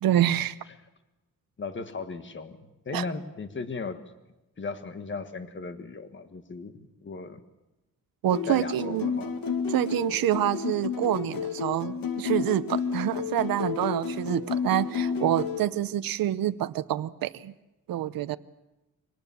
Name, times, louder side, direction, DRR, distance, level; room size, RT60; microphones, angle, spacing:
voice 1, 0.0-0.6 2.9-3.1 8.2-9.1 9.7-17.5 17.9-18.4, right 12 dB, 85° right, 13 dB, 0.7 m, -27 dB
voice 2, 1.6-4.1 4.6-7.4 8.5-9.3, left 4 dB, 35° left, 9 dB, 1.6 m, -36 dB
sound 1, 8.2-15.6, left 6 dB, 80° left, 2.1 m, -31 dB
24.5 x 18.5 x 7.2 m, 0.99 s
wide cardioid pair, 135°, 34 cm